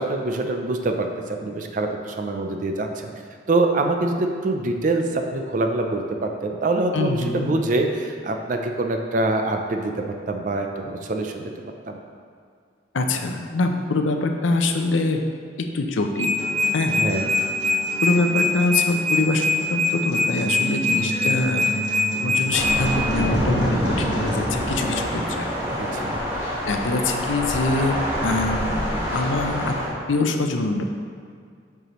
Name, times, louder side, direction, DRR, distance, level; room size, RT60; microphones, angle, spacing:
voice 1, 0.0-3.1 3.5-9.9 10.3-11.5 11.9-12.0 17.0-17.2 25.8-26.2, right 2 dB, 45° right, 4 dB, 0.4 m, -25 dB
voice 2, 6.9-7.5 12.9-15.3 15.7-16.4 16.7-17.0 18.0-21.8 22.2-25.5 26.7-29.7 30.1-30.8, left 2 dB, 85° left, 5 dB, 0.5 m, -24 dB
sound 1, 15.9-22.8, left 1 dB, 85° right, 1.1 m, -22 dB
Acoustic guitar, 16.4-24.4, right 1 dB, 60° left, 1.5 m, -33 dB
Thunder / Rain, 22.5-29.9, equal, 15° right, 1.3 m, -26 dB
7.6 x 4.8 x 3.0 m, 2.2 s
head